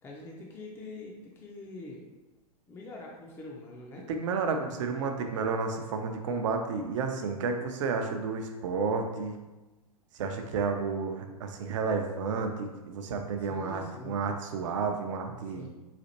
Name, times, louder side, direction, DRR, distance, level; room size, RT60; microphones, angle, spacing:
voice 1, 0.0-2.0 2.7-4.1 10.4-10.5 13.5-14.2 15.4-15.7, left 2 dB, 15° left, -2 dB, 0.4 m, -44 dB
voice 2, 4.1-9.4 10.2-15.7, right 4 dB, 55° right, 5 dB, 0.5 m, -31 dB
4.1 x 2.5 x 2.8 m, 1.1 s
figure-of-eight pair, 100°, 19 cm